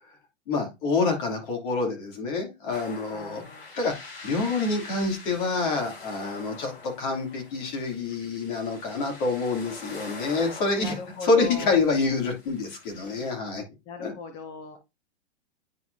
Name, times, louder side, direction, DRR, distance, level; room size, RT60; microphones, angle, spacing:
voice 1, 0.5-3.4 3.8-3.9 4.2-10.9 11.2-13.6 14.0-14.1, left 3 dB, 45° left, 2 dB, 2.8 m, -27 dB
sound 1, 2.7-13.3, left 3 dB, 65° left, 4.5 m, -45 dB
voice 2, 3.1-3.7 10.8-11.8 13.9-14.8, left 4 dB, 15° left, 6 dB, 0.5 m, -38 dB
9.3 x 4.6 x 2.7 m, 0.23 s
hypercardioid pair, 155°, 33 cm